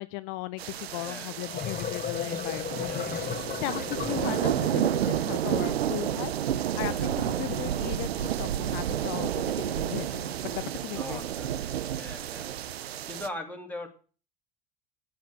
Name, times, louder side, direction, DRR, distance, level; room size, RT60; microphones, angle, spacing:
voice 1, 0.0-11.2 11.5-11.6, left 21 dB, 60° left, 14 dB, 0.5 m, -37 dB
sound 1, 0.6-13.3, right 11 dB, 90° right, 0.6 m, -31 dB
voice 2, 0.9-1.3 2.9-3.1 3.5-3.6 6.8-7.3 10.9-11.5 11.9-12.5 13.1-13.9, left 1 dB, 5° left, 2 dB, 2.9 m, -40 dB
sound 2, 1.3-5.1, left 8 dB, 30° left, 1.1 m, -35 dB
9.2 x 8.6 x 6.2 m, 0.38 s
hypercardioid pair, 70°, 30 cm